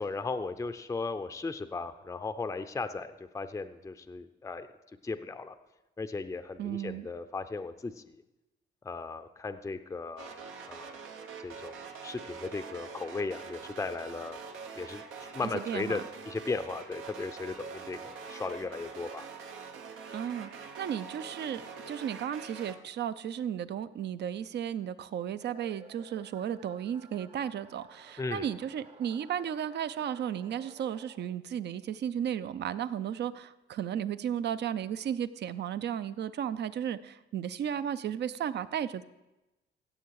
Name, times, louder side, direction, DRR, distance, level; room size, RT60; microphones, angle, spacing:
voice 1, 0.0-4.7 5.0-5.5 6.0-8.2 8.8-11.0 11.4-11.8 12.0-14.4 14.8-16.0 16.3-19.2 28.2-28.5, left 3 dB, 15° left, 8 dB, 0.5 m, -36 dB
voice 2, 6.6-7.1 15.5-16.0 20.1-20.5 20.8-39.0, right 9 dB, 60° right, 14 dB, 0.6 m, -34 dB
sound 1, 10.2-22.7, right 5 dB, 85° right, 1.1 m, -44 dB
sound 2, 25.4-31.6, right 4 dB, 30° right, 0.8 m, -55 dB
16.5 x 7.0 x 4.7 m, 1.0 s
cardioid pair, 90°, 20 cm